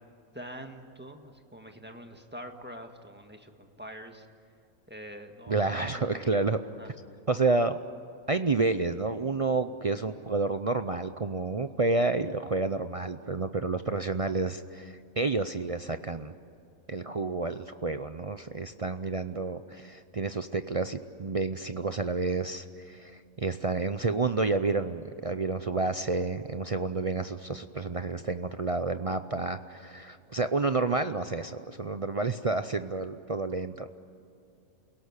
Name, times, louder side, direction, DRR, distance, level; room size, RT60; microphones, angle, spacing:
voice 1, 0.3-4.3 4.9-6.5 6.7-6.9, equal, 10° right, 5 dB, 1.6 m, -45 dB
voice 2, 5.5-6.6 7.3-7.8 8.3-16.3 16.9-33.9, right 3 dB, 45° right, 9 dB, 0.4 m, -30 dB
28.5 x 17.5 x 9.7 m, 2.6 s
omnidirectional pair, 1.5 m